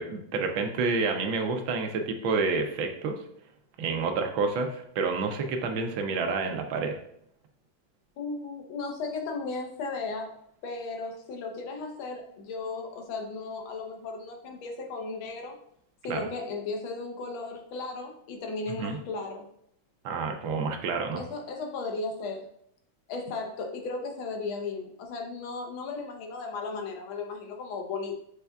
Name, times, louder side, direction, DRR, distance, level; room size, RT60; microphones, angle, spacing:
voice 1, 0.0-3.2 3.8-7.0 16.1-16.3 18.8-19.0 20.0-21.2, right 4 dB, 80° right, 4 dB, 1.5 m, -29 dB
voice 2, 8.2-10.3 10.6-15.6 16.0-19.5 21.2-22.5 23.1-28.2, left 3 dB, 90° left, 3 dB, 1.6 m, -35 dB
6.7 x 3.4 x 2.3 m, 0.71 s
omnidirectional pair, 2.2 m